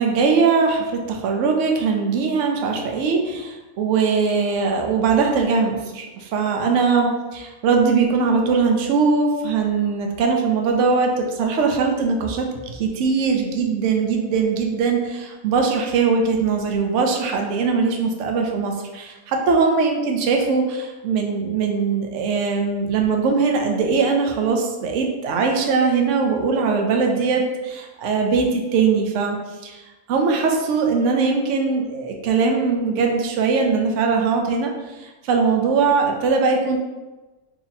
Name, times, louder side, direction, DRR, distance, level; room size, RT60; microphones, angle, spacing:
voice 1, 0.0-29.4 29.6-29.8 30.1-34.7 35.0-36.8, right 5 dB, 70° right, 2 dB, 0.9 m, -21 dB
2.9 x 2.7 x 4.0 m, 1.2 s
omnidirectional pair, 1.5 m